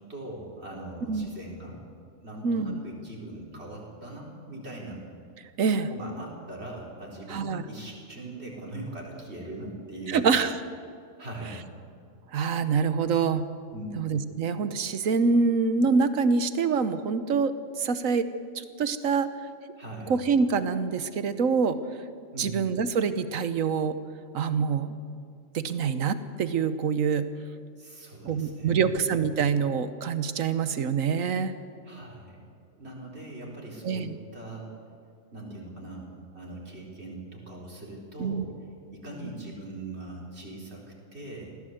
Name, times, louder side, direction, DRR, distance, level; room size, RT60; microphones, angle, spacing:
voice 1, 0.1-1.8 2.2-5.0 5.7-10.3 11.2-11.7 13.7-14.0 19.8-20.3 22.3-22.6 27.8-29.0 31.8-32.4 32.7-34.7 35.3-38.5 38.9-40.8 41.1-41.5, right 2 dB, 50° right, -3 dB, 4.5 m, -41 dB
voice 2, 2.4-2.8 5.6-5.9 7.3-7.6 10.1-10.6 12.3-13.4 14.0-17.5 17.8-18.3 18.5-19.3 20.1-21.8 22.4-23.9 24.3-25.0 25.5-27.3 28.2-31.5 33.8-34.2 38.2-38.4, right 5 dB, 75° right, 12 dB, 1.4 m, -25 dB
20.0 x 16.0 x 8.0 m, 2.3 s
omnidirectional pair, 1.4 m